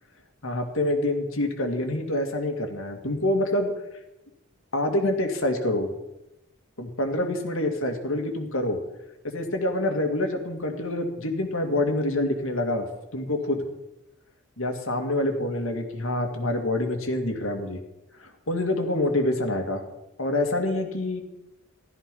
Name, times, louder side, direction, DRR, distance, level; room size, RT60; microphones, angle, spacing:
voice 1, 0.4-3.7 4.7-5.9 6.8-8.8 9.2-12.9 13.1-13.6 14.6-17.8 18.2-19.8 20.2-21.2, left 1 dB, 80° left, 5 dB, 2.4 m, -26 dB
16.0 x 13.0 x 5.5 m, 0.94 s
head